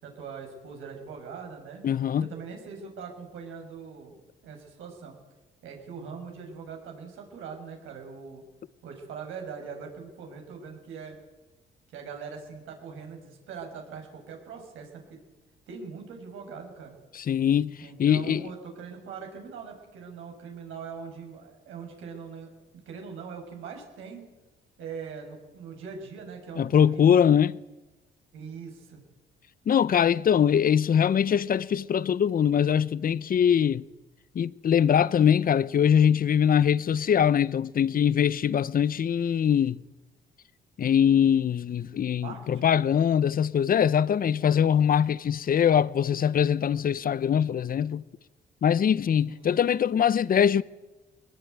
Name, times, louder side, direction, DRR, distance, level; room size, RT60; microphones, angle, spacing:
voice 1, 0.0-1.8 2.2-5.2 5.6-8.4 8.8-11.2 11.9-15.2 15.7-17.0 17.8-24.3 24.8-27.1 28.3-29.0 42.2-42.7 44.3-44.7 49.3-49.6, right 5 dB, 90° right, 6.1 m, -42 dB
voice 2, 1.8-2.3 17.1-17.7 18.0-18.4 26.6-27.6 29.7-33.8 34.3-39.8 40.8-48.0 48.6-50.6, left 8 dB, 45° left, 0.8 m, -22 dB
21.0 x 20.0 x 9.5 m
cardioid pair, 90°, 20 cm